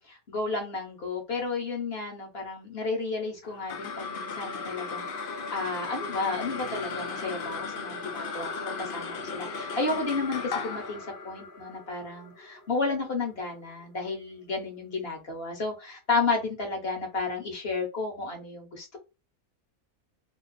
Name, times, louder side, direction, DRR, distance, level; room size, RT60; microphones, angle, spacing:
voice 1, 0.0-8.5 8.8-19.0, left 3 dB, 40° left, 2 dB, 1.3 m, -32 dB
sound 1, 3.4-14.0, left 4 dB, 65° left, 0.5 m, -36 dB
3.0 x 2.2 x 4.0 m, 0.28 s
omnidirectional pair, 1.6 m